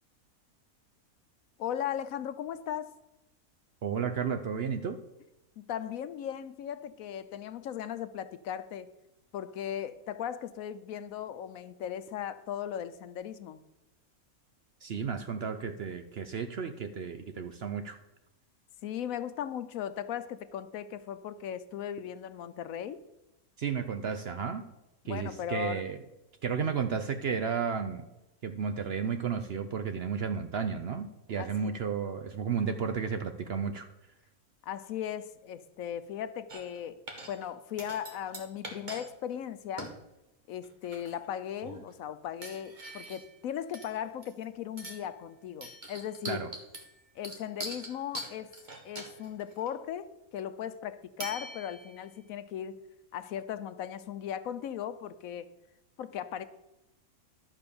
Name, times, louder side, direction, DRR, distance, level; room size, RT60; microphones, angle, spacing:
voice 1, 1.6-2.9 5.6-8.9 9.3-13.6 18.8-23.0 25.0-25.8 31.4-31.8 34.6-37.0 37.3-39.9 40.5-46.5 47.2-48.5 48.8-52.8 53.1-55.5 56.0-56.4, left 9 dB, 75° left, 12 dB, 1.0 m, -37 dB
voice 2, 3.8-5.0 14.8-18.0 23.6-24.6 25.1-26.0 26.4-28.0 28.4-33.9 46.3-46.5, right 6 dB, 55° right, 8 dB, 0.7 m, -33 dB
sound 1, 36.5-36.8 37.1-37.5 37.8-39.0 39.3-39.4 39.8-40.0 40.6-41.3 41.6-41.9 42.4-43.4 43.7-44.4 44.8-45.1 45.6-49.7 51.2-52.0, right 1 dB, 35° right, 1.5 m, -43 dB
11.5 x 5.1 x 6.9 m, 0.97 s
omnidirectional pair, 1.5 m